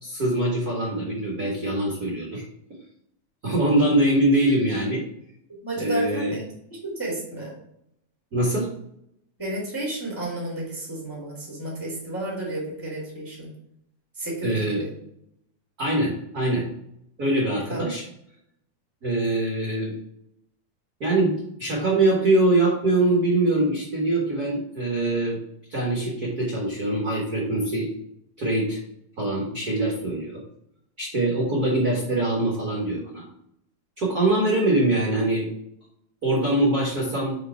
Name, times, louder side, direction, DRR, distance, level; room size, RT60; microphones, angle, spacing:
voice 1, 0.0-2.4 3.4-5.0 5.8-6.4 8.3-8.7 14.4-14.8 15.8-16.7 17.2-18.0 19.0-20.0 21.0-25.4 25.7-27.9 28.4-28.8 29.2-30.4 31.0-33.2 34.0-35.5 36.2-37.4, right 1 dB, 50° right, -4 dB, 1.1 m, -23 dB
voice 2, 5.6-6.5 6.8-7.5 9.4-13.5 14.1-14.9 17.7-17.9, right 1 dB, 10° left, -3 dB, 1.4 m, -32 dB
5.4 x 4.9 x 4.6 m, 0.76 s
omnidirectional pair, 4.3 m